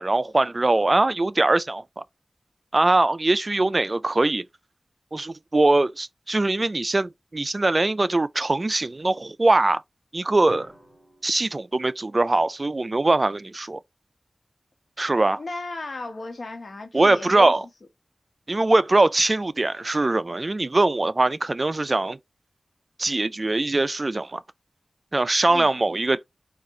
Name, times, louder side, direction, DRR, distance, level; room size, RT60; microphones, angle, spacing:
voice 1, 0.0-2.0 2.7-4.5 5.1-9.8 10.1-10.7 11.2-13.8 15.0-15.4 16.9-17.6 18.5-22.2 23.0-24.4 25.1-26.3, right 2 dB, 40° right, 0.3 m, -22 dB
Drum, 10.5-12.6, right 1 dB, 5° right, 1.9 m, -48 dB
voice 2, 15.4-17.5 25.5-25.7, left 2 dB, 70° left, 1.2 m, -35 dB
4.6 x 2.4 x 4.6 m
wide cardioid pair, 55°, 0 cm